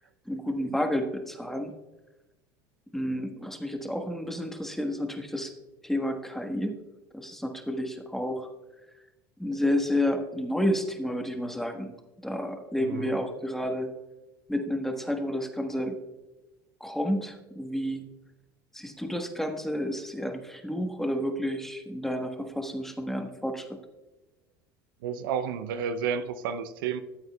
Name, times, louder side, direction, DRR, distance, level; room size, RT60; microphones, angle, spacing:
voice 1, 0.3-1.7 2.9-5.5 5.8-6.8 7.1-8.5 9.4-12.0 12.2-13.9 14.5-16.0 16.8-18.0 18.7-23.8, equal, 5° left, 5 dB, 1.3 m, -30 dB
voice 2, 12.8-13.2 25.0-27.0, right 7 dB, 80° right, 10 dB, 0.5 m, -31 dB
13.5 x 8.0 x 2.3 m, 1.1 s
hypercardioid pair, 80°, 11 cm